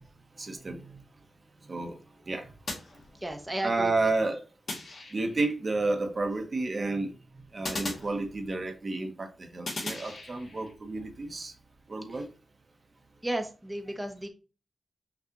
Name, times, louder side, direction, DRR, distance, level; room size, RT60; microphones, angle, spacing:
voice 1, 0.4-1.0 1.7-2.0 2.3-2.5 3.6-4.4 5.1-11.5 11.9-12.3, right 3 dB, 50° right, 5 dB, 0.9 m, -31 dB
sound 1, 2.7-3.6 4.7-5.5 7.6-8.8 9.6-10.7, left 2 dB, 65° left, 1.4 m, -39 dB
voice 2, 3.2-4.3 12.1-12.2 13.2-14.3, right 1 dB, 15° right, 4 dB, 0.7 m, -34 dB
5.9 x 2.4 x 2.9 m, 0.34 s
cardioid pair, 55°, 0 cm